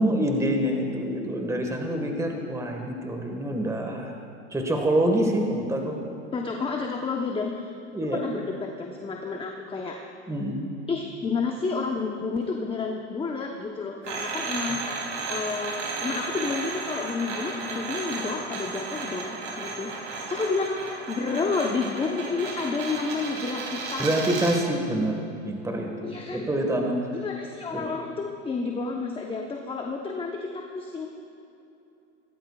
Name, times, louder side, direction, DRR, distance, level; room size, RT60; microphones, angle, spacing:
voice 1, 0.0-4.2 4.5-6.0 7.9-8.2 10.3-10.6 24.0-25.2 25.4-27.0 27.7-27.9, right 1 dB, 10° right, 2 dB, 1.7 m, -26 dB
voice 2, 6.3-7.7 8.1-10.0 10.9-14.8 15.3-24.4 26.0-26.4 27.1-31.1, left 4 dB, 15° left, 1 dB, 1.0 m, -30 dB
sound 1, 14.0-24.7, right 3 dB, 80° right, 3.3 m, -34 dB
22.0 x 17.5 x 2.4 m, 2.8 s
hypercardioid pair, 100°, 35 cm